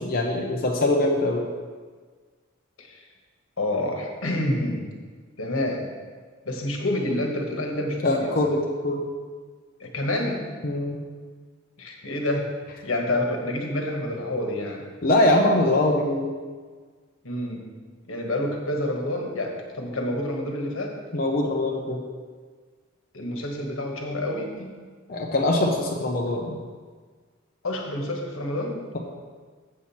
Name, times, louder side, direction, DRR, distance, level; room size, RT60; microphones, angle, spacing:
voice 1, 0.0-1.4 8.0-9.0 10.6-11.0 15.0-16.3 21.1-22.0 25.1-26.6, left 1 dB, 45° left, -1 dB, 0.7 m, -22 dB
voice 2, 3.6-4.8 5.4-5.9 6.4-8.4 9.8-10.4 11.8-12.5 12.8-14.9 17.2-17.6 18.1-21.0 23.1-24.7 27.6-28.8, left 1 dB, 80° left, 2 dB, 1.3 m, -28 dB
7.6 x 7.4 x 4.2 m, 1.5 s
head